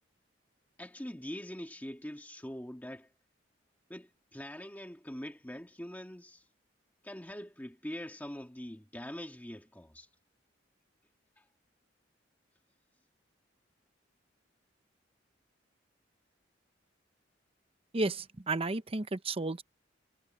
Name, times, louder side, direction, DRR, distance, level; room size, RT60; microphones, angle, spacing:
voice 1, 0.8-3.1 3.9-6.4 7.0-10.1 11.4-11.5, equal, 10° left, 1.7 m, -43 dB
voice 2, 17.9-19.6, right 2 dB, 30° right, 0.8 m, -32 dB
head